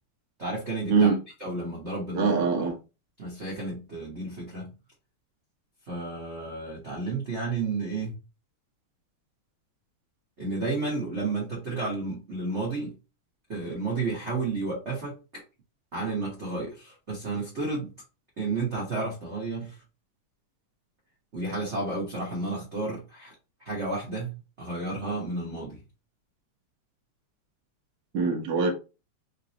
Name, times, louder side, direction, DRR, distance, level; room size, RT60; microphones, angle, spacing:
voice 1, 0.4-1.1 1.4-2.7 3.2-4.7 5.9-8.1 10.4-13.0 13.5-15.4 15.9-17.9 18.4-19.8 21.3-23.3 23.6-25.8, right 3 dB, 45° right, 0.8 m, -32 dB
voice 2, 2.1-2.7 28.1-28.7, right 5 dB, 85° right, 0.8 m, -23 dB
4.0 x 3.8 x 2.9 m
omnidirectional pair, 3.4 m